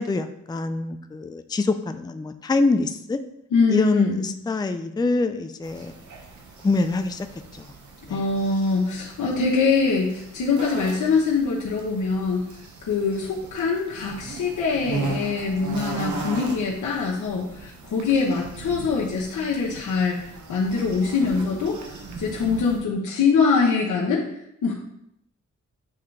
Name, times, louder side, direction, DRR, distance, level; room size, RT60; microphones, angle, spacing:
voice 1, 0.0-3.2 3.7-5.9 6.6-7.3 7.5-7.7 8.1-8.2, left 3 dB, 15° left, 9 dB, 0.4 m, -24 dB
voice 2, 3.5-4.3 8.1-12.5 12.9-21.8 22.2-24.2 24.6-24.7, left 4 dB, 80° left, -4 dB, 1.0 m, -23 dB
sound 1, 5.6-22.8, right 3 dB, 75° right, 1.0 m, -38 dB
8.6 x 3.4 x 3.2 m, 0.77 s
cardioid pair, 65°, 30 cm